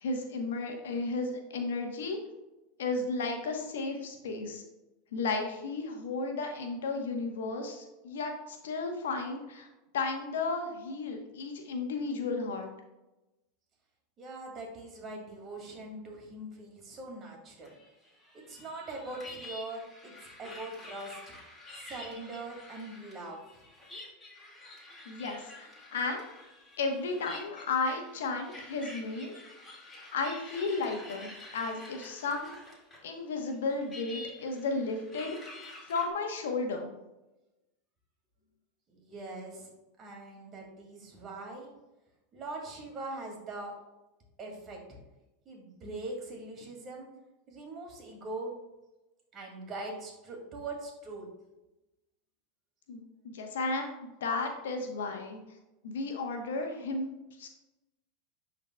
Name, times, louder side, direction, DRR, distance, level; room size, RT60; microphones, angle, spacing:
voice 1, 0.0-2.2 2.8-4.6 5.1-9.7 9.9-12.7 25.1-26.2 26.8-29.3 30.1-32.6 33.0-35.4 35.9-36.9 52.9-55.4 55.8-57.5, left 3 dB, 80° left, 4 dB, 1.0 m, -34 dB
voice 2, 14.2-17.8 18.3-21.4 21.7-23.6 38.9-39.7 40.0-41.7 42.3-43.8 44.4-45.0 45.5-47.1 47.5-48.6 49.3-51.3, right 2 dB, 35° right, 0 dB, 2.2 m, -42 dB
sound 1, 17.6-33.1 33.3-36.1, left 2 dB, 15° left, 1.9 m, -49 dB
11.0 x 4.0 x 2.2 m, 1.0 s
hypercardioid pair, 100°, 0 cm